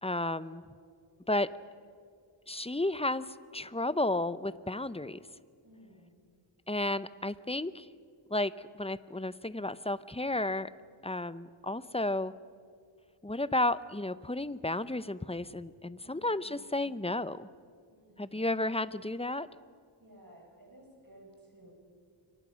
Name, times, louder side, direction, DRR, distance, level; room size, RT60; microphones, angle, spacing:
voice 1, 0.0-0.6 1.3-1.5 2.5-5.2 6.7-7.9 8.3-10.7 11.0-12.3 13.2-17.5 18.2-19.5, left 2 dB, 10° left, 16 dB, 0.6 m, -32 dB
voice 2, 5.6-6.2 16.0-16.9 17.9-18.5 20.0-21.7, right 1 dB, 45° right, 1 dB, 5.7 m, -57 dB
29.5 x 24.0 x 6.3 m, 2.2 s
wide cardioid pair, 50°, 50 cm